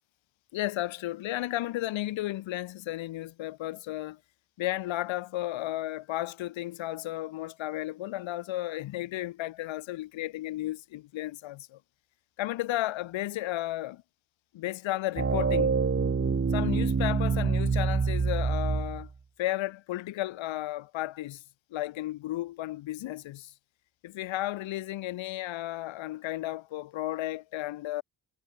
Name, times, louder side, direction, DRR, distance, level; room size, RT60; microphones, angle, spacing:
voice 1, 0.5-4.2 4.6-11.8 12.4-14.0 14.5-15.8 16.5-19.1 19.4-21.4 21.7-23.5 24.0-28.0, left 15 dB, 90° left, 6.3 m, -33 dB
sound 1, 15.2-19.1, right 5 dB, 30° right, 7.1 m, -26 dB
cardioid pair, 125°, 45 cm